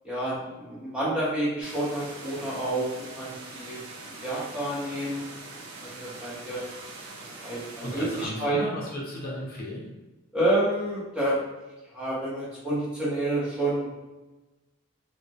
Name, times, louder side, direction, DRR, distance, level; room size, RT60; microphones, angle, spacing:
voice 1, 0.0-2.9 3.2-3.8 4.2-5.2 5.8-5.9 6.2-6.7 7.4-8.6 10.3-11.4 11.9-13.9, right 1 dB, 5° right, -8 dB, 0.6 m, -28 dB
sound 1, 1.6-8.3, right 3 dB, 75° right, 0.4 m, -43 dB
voice 2, 7.8-9.9, equal, 45° left, -4 dB, 0.6 m, -35 dB
2.2 x 2.0 x 2.7 m, 1.1 s
head